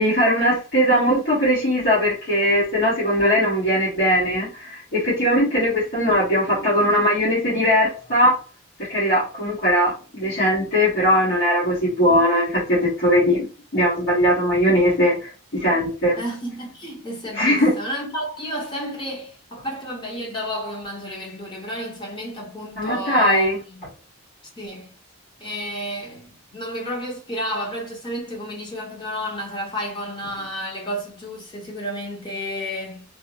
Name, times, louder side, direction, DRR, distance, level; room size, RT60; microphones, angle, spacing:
voice 1, 0.0-8.4 8.9-13.5 13.7-16.2 17.3-17.7 22.8-23.6, equal, 60° left, 1.6 m, -20 dB
voice 2, 16.2-23.5 24.6-24.9 25.4-33.0, equal, 25° left, 0.9 m, -31 dB
3.4 x 2.1 x 3.0 m
head